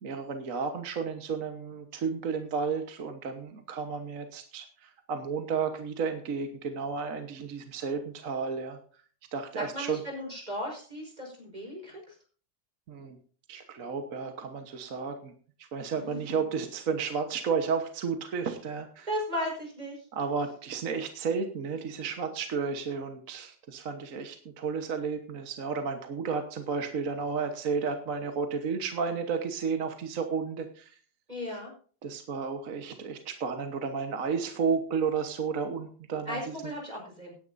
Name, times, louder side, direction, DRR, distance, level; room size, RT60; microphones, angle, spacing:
voice 1, 0.0-8.8 9.3-10.0 12.9-13.2 13.5-15.3 15.6-19.1 20.1-31.0 32.0-36.6, right 5 dB, 50° right, 6 dB, 1.5 m, -32 dB
voice 2, 9.5-12.2 15.9-16.2 19.1-20.0 31.3-31.7 36.3-37.3, equal, 20° right, -1 dB, 4.9 m, -36 dB
18.0 x 10.0 x 2.6 m, 0.42 s
omnidirectional pair, 1.9 m